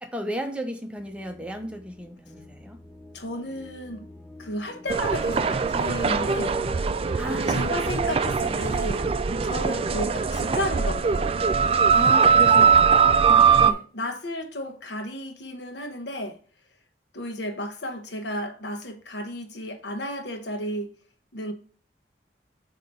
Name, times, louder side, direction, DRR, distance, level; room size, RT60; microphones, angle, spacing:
voice 1, 0.0-2.8 7.2-7.7 11.9-13.1, equal, 5° right, 0.7 m, -34 dB
sound 1, 1.0-10.8, left 1 dB, 10° left, 2.6 m, -49 dB
voice 2, 3.1-4.1 4.4-6.6 7.5-9.1 9.4-11.3 13.6-16.4 17.1-20.9 21.3-21.5, equal, 75° left, 1.0 m, -33 dB
sound 2, 4.9-13.7, right 6 dB, 30° right, 0.3 m, -21 dB
7.8 x 2.9 x 5.3 m
head